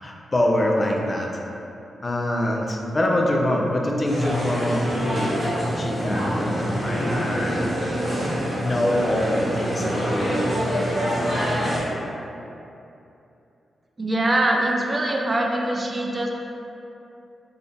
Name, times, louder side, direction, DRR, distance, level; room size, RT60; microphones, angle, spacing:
voice 1, 0.0-1.3 2.0-5.4 5.8-7.7 8.0-8.1 8.6-10.5, left 1 dB, 35° left, -1 dB, 0.4 m, -24 dB
sound 1, 4.0-11.8, equal, 55° right, 1.1 m, -25 dB
voice 2, 14.0-16.3, right 1 dB, 35° right, 0 dB, 0.3 m, -23 dB
3.6 x 2.2 x 2.5 m, 2.8 s
supercardioid pair, 45°, 0 cm